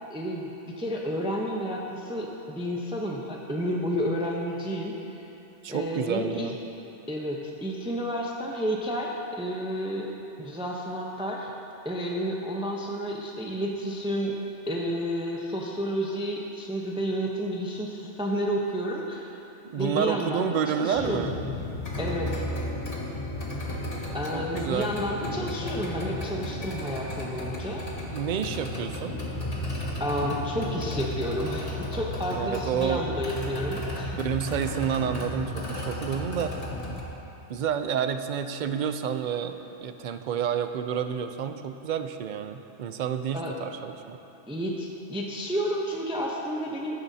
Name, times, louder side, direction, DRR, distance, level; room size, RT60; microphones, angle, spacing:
voice 1, 0.1-0.5 0.8-5.3 5.7-6.5 7.1-10.1 10.4-11.5 11.8-14.4 14.7-19.3 19.7-21.3 22.0-22.4 24.1-27.8 30.0-34.2 43.3-43.5 44.5-46.9, equal, 5° right, -2 dB, 0.7 m, -31 dB
voice 2, 5.6-6.6 19.7-21.3 24.3-24.9 28.1-29.2 32.3-33.2 34.2-36.5 37.5-44.2, right 8 dB, 55° right, 8 dB, 0.5 m, -29 dB
sound 1, 20.9-37.0, left 1 dB, 35° left, 1.3 m, -33 dB
15.0 x 11.0 x 2.8 m, 2.9 s
omnidirectional pair, 1.2 m